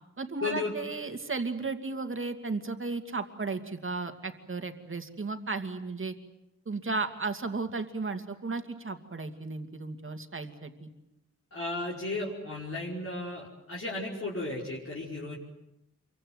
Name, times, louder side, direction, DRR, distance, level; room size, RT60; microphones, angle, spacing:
voice 1, 0.2-6.1 6.7-10.9, right 3 dB, 45° right, 7 dB, 2.5 m, -34 dB
voice 2, 11.5-15.4, left 2 dB, 50° left, -5 dB, 5.2 m, -34 dB
28.0 x 24.0 x 8.0 m, 0.87 s
wide cardioid pair, 100°, 29 cm